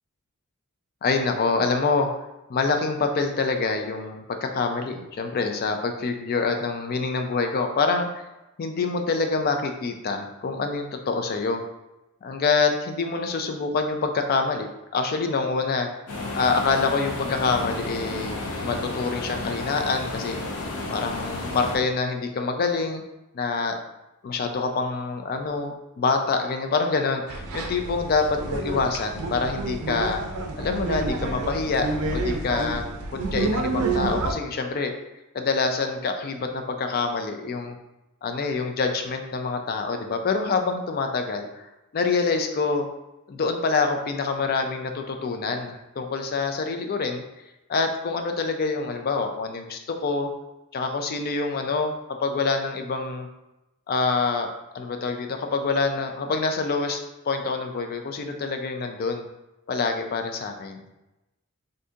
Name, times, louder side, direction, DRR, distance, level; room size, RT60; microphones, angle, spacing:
voice 1, 1.0-2.1 2.5-8.3 8.6-11.6 12.2-14.7 14.9-15.9 16.3-20.4 20.9-23.0 23.3-23.7 24.2-30.2 30.6-32.8 33.1-34.9 35.3-37.8 38.2-41.7 41.9-42.9 43.3-47.2 47.7-50.3 50.7-51.9 52.2-53.3 53.9-54.5 54.7-57.0 57.3-59.2 59.7-60.8, left 4 dB, 45° left, 5 dB, 0.3 m, -26 dB
sound 1, 16.1-21.8, left 2 dB, 90° left, 0.7 m, -32 dB
sound 2, 27.3-34.3, right 3 dB, 75° right, 0.5 m, -29 dB
2.6 x 2.6 x 3.5 m, 0.96 s
head